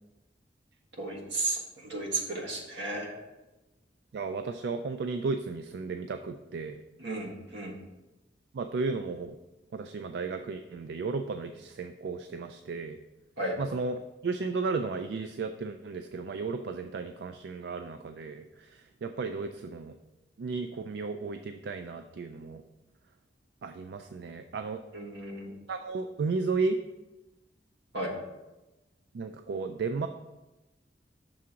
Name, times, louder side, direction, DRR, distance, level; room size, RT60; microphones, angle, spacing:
voice 1, 1.0-3.1 7.0-7.7 13.4-13.6 24.9-25.5 27.9-28.1, right 2 dB, 90° right, 0 dB, 1.5 m, -34 dB
voice 2, 4.1-6.8 8.5-9.4 9.7-13.0 13.6-18.7 19.0-19.9 20.4-22.6 23.6-24.8 25.7-26.8 29.1-30.1, right 4 dB, 70° right, 8 dB, 0.3 m, -34 dB
6.2 x 3.7 x 5.7 m, 1.0 s
head